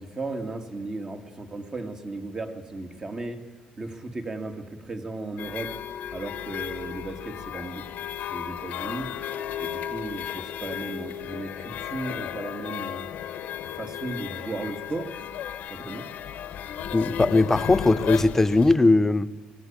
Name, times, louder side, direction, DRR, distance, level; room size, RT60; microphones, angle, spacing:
voice 1, 0.0-3.4 3.8-5.8 6.1-7.9 8.3-9.1 9.6-13.1 13.7-15.1 15.7-16.1, right 2 dB, 25° right, 6 dB, 2.2 m, -35 dB
sound 1, 5.4-18.8, left 10 dB, 65° left, 1.2 m, -35 dB
voice 2, 16.9-19.3, left 2 dB, 15° left, 16 dB, 0.7 m, -19 dB
19.5 x 16.0 x 8.9 m, 1.3 s
cardioid pair, 130°, 3 cm